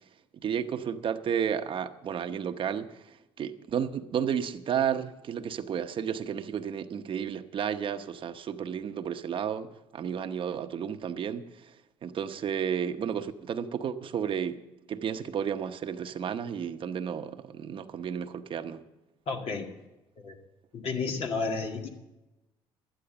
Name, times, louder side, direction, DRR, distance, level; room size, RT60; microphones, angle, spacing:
voice 1, 0.3-11.7 12.0-14.6 14.9-18.8, right 8 dB, 50° right, 0.9 m, -32 dB
voice 2, 19.3-19.7 20.2-20.4 20.7-21.9, left 4 dB, 60° left, 2.1 m, -31 dB
12.0 x 10.5 x 6.8 m
supercardioid pair, 85°, 11 cm